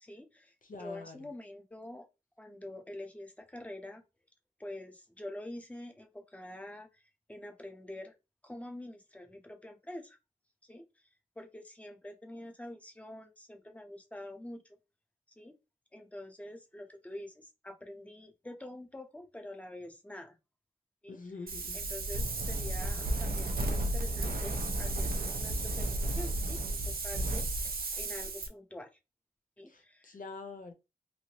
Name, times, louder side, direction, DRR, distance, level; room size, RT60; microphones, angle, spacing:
voice 1, 0.0-2.1 2.4-4.0 4.6-8.1 8.4-10.2 10.7-11.1 11.4-14.8 15.4-15.5 15.9-20.4 21.0-21.2 21.7-27.5 28.0-28.9 29.6-30.2, left 1 dB, 10° left, 0.7 m, -46 dB
voice 2, 0.6-1.3 21.1-21.8 29.7-30.7, left 4 dB, 60° left, 0.5 m, -45 dB
Wind, 21.5-28.5, right 2 dB, 75° right, 0.6 m, -33 dB
3.1 x 2.7 x 2.9 m
wide cardioid pair, 65°, 15 cm